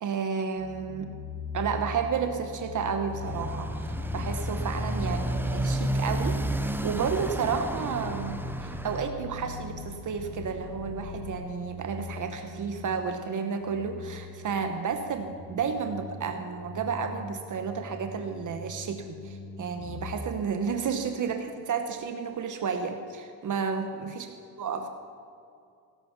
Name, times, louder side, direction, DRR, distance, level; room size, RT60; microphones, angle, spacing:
voice 1, 0.0-1.1 1.5-6.4 6.8-24.3 24.6-24.9, right 6 dB, 45° right, 6 dB, 1.0 m, -31 dB
sound 1, 0.6-20.2, left 3 dB, 85° left, 3.9 m, -40 dB
Motorcycle, 3.1-9.1, right 1 dB, 5° right, 0.5 m, -31 dB
sound 2, 3.6-11.4, left 3 dB, 60° left, 3.2 m, -45 dB
18.0 x 11.0 x 5.9 m, 2.6 s
cardioid pair, 150°, 42 cm